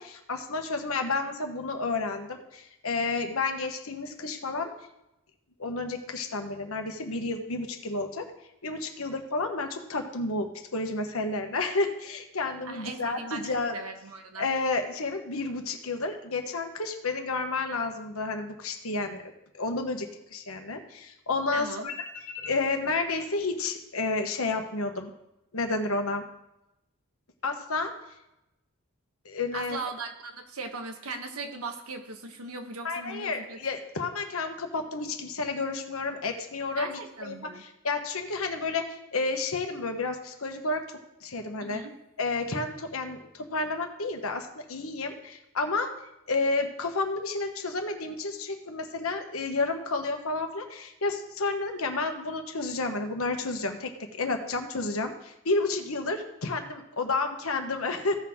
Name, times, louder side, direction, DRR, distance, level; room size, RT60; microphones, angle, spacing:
voice 1, 0.0-4.7 5.6-8.3 8.6-13.7 14.4-25.1 25.5-26.2 27.4-27.9 29.2-29.8 32.8-40.8 41.2-41.8 42.2-45.9 46.3-53.9 54.2-58.2, left 3 dB, 75° left, 5 dB, 1.3 m, -31 dB
voice 2, 12.7-13.5 13.7-14.5 21.5-21.9 29.5-33.6 36.7-37.6 41.6-41.9, right 3 dB, 85° right, 5 dB, 1.3 m, -38 dB
16.0 x 6.1 x 3.7 m, 0.88 s
head